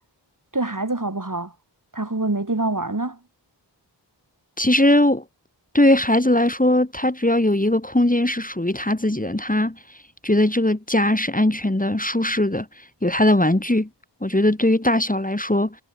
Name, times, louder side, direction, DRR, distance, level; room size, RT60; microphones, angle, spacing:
voice 1, 0.5-1.5 1.9-3.2, right 2 dB, 45° right, 4.8 m, -25 dB
voice 2, 4.6-5.2 5.7-9.8 10.2-12.7 13.0-13.9 14.2-15.8, left 1 dB, 20° left, 2.2 m, -19 dB
wide cardioid pair, 50°, 44 cm